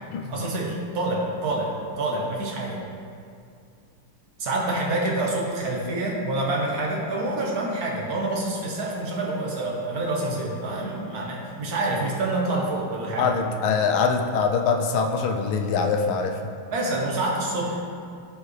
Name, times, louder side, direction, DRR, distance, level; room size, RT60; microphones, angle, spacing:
voice 1, 0.3-2.8 4.4-13.3 16.7-17.8, right 2 dB, 50° right, -2 dB, 1.5 m, -27 dB
voice 2, 13.2-16.4, left 5 dB, 75° left, 5 dB, 1.4 m, -23 dB
13.5 x 4.6 x 3.3 m, 2.3 s
omnidirectional pair, 2.3 m